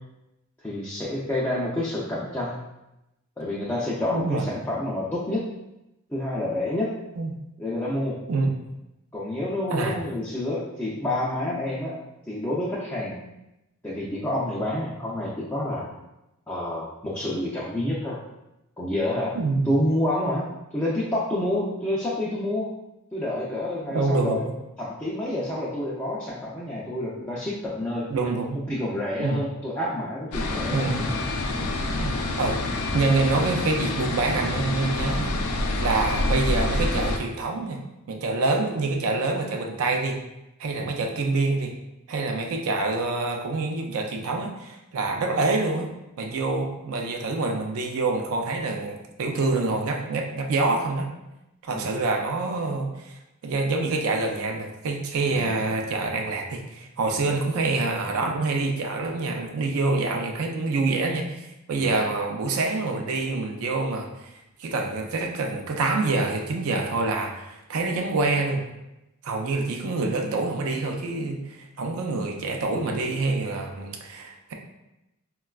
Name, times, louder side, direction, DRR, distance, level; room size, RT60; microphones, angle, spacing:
voice 1, 0.6-2.6 3.4-5.4 6.1-6.9 7.6-8.2 9.1-12.0 12.3-13.2 13.8-15.9 16.5-18.2 18.8-19.4 19.6-20.5 20.7-22.7 23.1-24.5 24.8-28.1 28.7-31.1 31.5-31.7 35.2-35.4 40.8-40.9 51.7-51.9 55.3-55.5 61.8-61.9, left 1 dB, 10° left, -7 dB, 0.4 m, -28 dB
voice 2, 4.1-4.4 7.2-7.4 8.3-8.5 9.7-10.0 19.4-19.7 23.9-24.4 28.1-28.6 29.2-29.4 30.7-31.0 32.0-32.6 32.9-35.3 35.8-37.8 38.1-40.2 40.6-41.8 42.1-45.9 46.2-51.1 51.6-53.2 53.4-68.6 69.2-74.5, right 3 dB, 75° right, 2 dB, 0.4 m, -26 dB
sound 1, 30.3-37.2, left 2 dB, 80° left, 0.4 m, -27 dB
3.8 x 2.2 x 2.3 m, 0.92 s
head